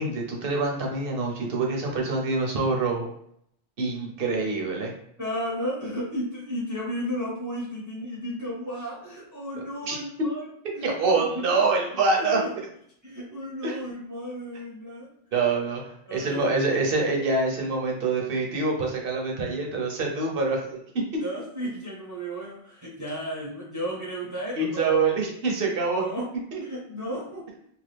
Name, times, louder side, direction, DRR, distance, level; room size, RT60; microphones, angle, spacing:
voice 1, 0.0-3.1 3.8-4.9 9.8-10.3 10.8-12.4 13.6-13.8 15.3-21.2 24.6-26.0 26.5-26.6, right 3 dB, 60° right, 0 dB, 0.9 m, -26 dB
voice 2, 5.2-11.6 12.1-12.5 13.0-15.1 16.1-16.8 21.2-25.1 26.0-26.3 26.6-27.5, equal, 20° right, -4 dB, 0.6 m, -34 dB
2.9 x 2.2 x 3.3 m, 0.70 s
omnidirectional pair, 1.1 m